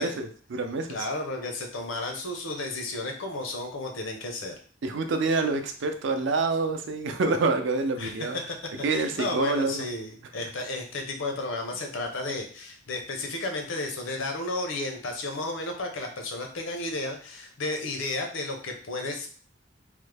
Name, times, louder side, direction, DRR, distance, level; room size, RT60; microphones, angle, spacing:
voice 1, 0.0-1.0 4.8-8.4 8.8-9.8, right 3 dB, 70° right, 6 dB, 0.5 m, -27 dB
voice 2, 0.9-4.6 8.0-8.4 8.8-19.3, left 2 dB, 80° left, 3 dB, 0.7 m, -33 dB
3.2 x 2.1 x 3.3 m, 0.43 s
head